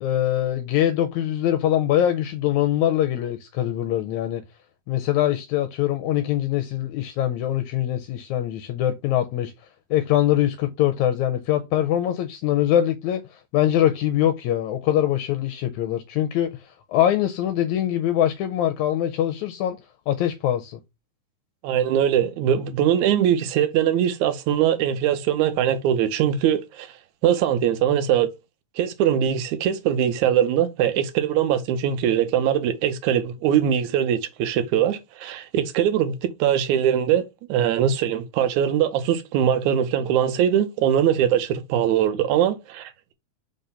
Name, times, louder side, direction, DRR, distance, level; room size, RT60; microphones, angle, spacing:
voice 1, 0.0-4.4 4.9-9.5 9.9-19.8 20.1-20.8, left 11 dB, 80° left, 2.0 m, -23 dB
voice 2, 21.6-26.9 27.2-28.3 28.8-37.2 37.5-43.1, right 9 dB, 80° right, 2.1 m, -21 dB
5.0 x 3.9 x 5.5 m
omnidirectional pair, 3.5 m